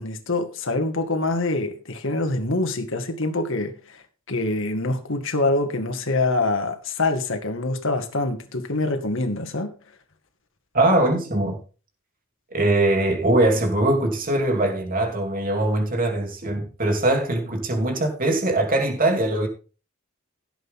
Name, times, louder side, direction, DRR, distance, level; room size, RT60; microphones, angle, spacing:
voice 1, 0.0-4.0 4.3-9.7, left 2 dB, 65° left, 2.1 m, -25 dB
voice 2, 10.7-11.6 12.5-19.5, right 1 dB, 40° right, 3.1 m, -21 dB
16.0 x 8.2 x 3.8 m
head